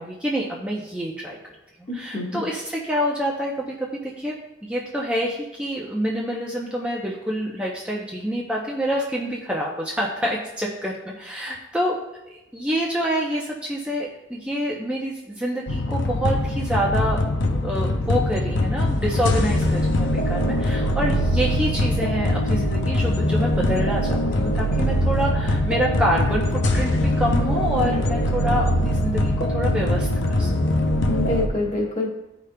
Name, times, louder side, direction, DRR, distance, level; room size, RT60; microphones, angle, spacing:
voice 1, 0.0-1.4 1.9-4.3 4.6-12.0 12.3-17.2 17.5-30.1 30.4-30.5, equal, 5° right, -3 dB, 0.6 m, -27 dB
voice 2, 1.9-2.4 31.1-32.1, left 2 dB, 40° left, -3 dB, 1.4 m, -26 dB
sound 1, 15.7-31.5, left 1 dB, 65° left, 0.6 m, -22 dB
13.0 x 5.0 x 2.2 m, 0.93 s
head